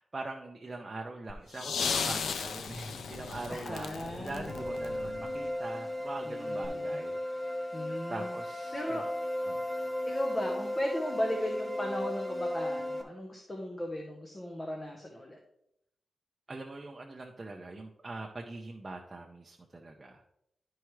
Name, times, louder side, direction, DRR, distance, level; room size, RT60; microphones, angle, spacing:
voice 1, 0.0-7.7 8.1-9.0 9.5-9.6 16.5-20.2, right 2 dB, 25° right, 1 dB, 0.6 m, -42 dB
sound 1, 1.3-5.5 6.6-6.7, left 5 dB, 90° left, 0.5 m, -36 dB
voice 2, 3.5-4.5 6.3-7.0 7.7-8.3 8.7-9.1 10.0-15.4, left 1 dB, 20° left, 1 dB, 0.9 m, -36 dB
sound 2, 4.5-13.0, left 1 dB, 5° right, 1.0 m, -35 dB
11.5 x 4.7 x 3.1 m, 0.78 s
wide cardioid pair, 140°, 0 cm